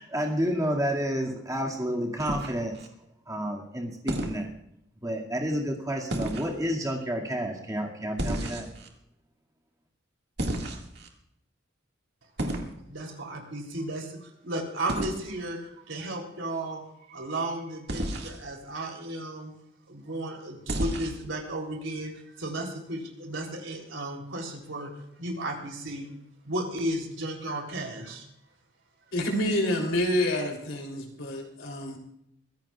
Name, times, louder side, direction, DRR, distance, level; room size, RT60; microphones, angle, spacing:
voice 1, 0.0-2.9 3.3-4.5 5.0-8.7, equal, 15° right, -1 dB, 2.1 m, -30 dB
sound 1, 2.2-2.9 4.1-4.4 6.1-6.5 8.2-8.9 10.4-11.1 12.4-12.7 14.9-15.2 17.9-18.4 20.7-21.2, right 1 dB, 55° right, 2.0 m, -31 dB
voice 2, 12.9-19.5 19.9-24.9 25.2-26.1 26.4-28.3, right 1 dB, 80° right, 2 dB, 3.3 m, -34 dB
voice 3, 29.1-32.0, left 1 dB, 75° left, 1 dB, 3.3 m, -28 dB
23.5 x 16.0 x 2.4 m, 0.78 s
head